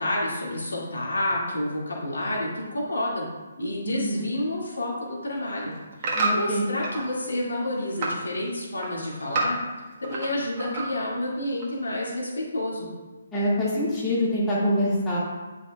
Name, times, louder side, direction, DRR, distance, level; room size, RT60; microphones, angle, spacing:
voice 1, 0.0-3.3 3.6-5.7 6.0-9.6 10.0-12.9, left 1 dB, 70° left, -4 dB, 2.3 m, -29 dB
voice 2, 3.8-4.3 6.1-6.6 13.3-15.2, left 1 dB, 15° left, -8 dB, 2.2 m, -25 dB
sound 1, 5.2-7.1 7.5-8.2 8.6-10.3 10.6-11.1 11.6-11.7, right 2 dB, 35° right, 1.5 m, -29 dB
10.0 x 5.5 x 2.4 m, 1.2 s
figure-of-eight pair, 140°, 0 cm